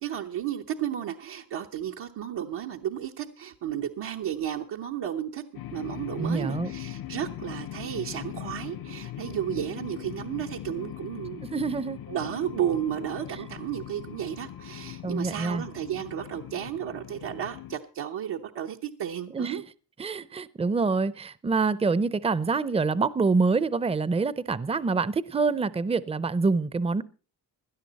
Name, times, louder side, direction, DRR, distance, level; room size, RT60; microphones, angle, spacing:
voice 1, 0.0-5.4 5.7-11.4 12.1-19.6, right 10 dB, 80° right, 1.0 m, -33 dB
sound 1, 5.5-17.8, left 12 dB, 60° left, 0.7 m, -40 dB
voice 2, 6.2-6.7 11.5-12.0 15.0-15.6 19.3-19.6 20.0-27.0, right 4 dB, 15° right, 0.5 m, -26 dB
17.0 x 11.5 x 4.1 m
cardioid pair, 100°, 40 cm